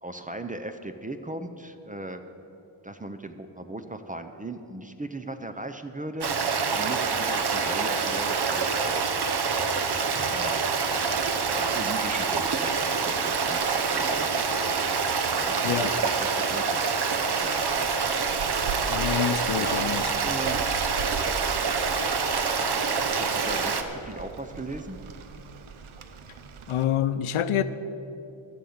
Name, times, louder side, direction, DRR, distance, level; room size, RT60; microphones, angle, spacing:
voice 1, 0.0-2.2 2.8-6.3 6.7-9.2 10.3-10.7 11.5-14.4 15.2-17.1 17.4-17.9 19.6-19.8 20.2-20.8 23.0-25.0, right 2 dB, 20° right, 8 dB, 0.4 m, -38 dB
Stream, 6.2-23.8, right 5 dB, 55° right, 0.8 m, -26 dB
Rain, 10.8-26.8, right 5 dB, 85° right, 0.8 m, -42 dB
voice 2, 18.9-20.1 26.7-27.6, left 10 dB, 90° left, 13 dB, 0.6 m, -26 dB
12.0 x 7.0 x 7.9 m, 2.8 s
wide cardioid pair, 165°, 48 cm